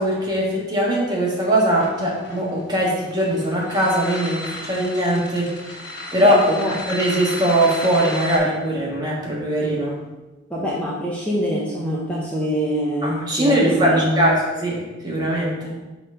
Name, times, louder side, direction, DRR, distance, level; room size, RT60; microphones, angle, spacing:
voice 1, 0.0-5.5 6.1-6.4 6.6-10.0 13.0-15.5, right 1 dB, 20° right, -4 dB, 1.7 m, -21 dB
sound 1, 1.8-8.4, left 1 dB, 60° left, 2.4 m, -33 dB
voice 2, 6.2-6.7 10.5-14.4 15.6-15.7, equal, 5° left, -6 dB, 1.0 m, -24 dB
5.9 x 3.9 x 5.6 m, 1.1 s
head